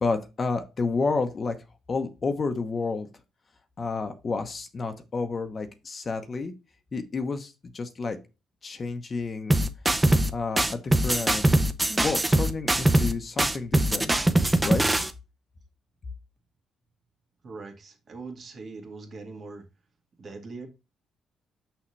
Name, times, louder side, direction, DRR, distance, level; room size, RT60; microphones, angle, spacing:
voice 1, 0.0-1.6 1.9-3.1 3.8-6.5 6.9-8.2 8.6-9.6 10.3-11.5 11.9-14.1 14.6-14.8, left 4 dB, 40° left, 0.9 m, -30 dB
sound 1, 9.5-10.3 10.6-13.1 13.4-15.1, right 1 dB, 15° right, 0.8 m, -22 dB
voice 2, 17.4-19.7 20.2-20.7, right 3 dB, 50° right, 1.9 m, -41 dB
6.0 x 5.6 x 3.2 m
cardioid pair, 90°, 0 cm